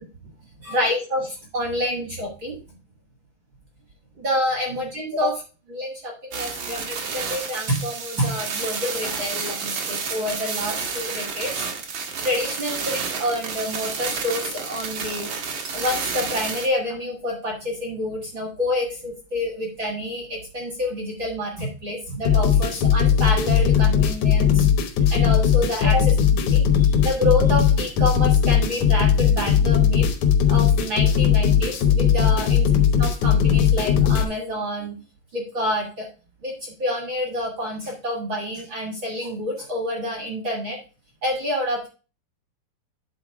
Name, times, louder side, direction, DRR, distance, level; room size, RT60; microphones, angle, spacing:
voice 1, 0.6-2.6 4.2-5.3 5.7-11.5 12.2-15.3 15.7-24.6 25.1-30.1 30.5-32.7 33.0-35.0 35.3-36.1 36.4-40.8 41.2-41.9, left 1 dB, 60° right, 1 dB, 1.2 m, -28 dB
sound 1, 6.3-16.7, right 5 dB, 80° right, 1.3 m, -30 dB
sound 2, 22.2-34.2, left 8 dB, 80° left, 1.6 m, -18 dB
10.0 x 3.9 x 4.7 m, 0.33 s
omnidirectional pair, 4.7 m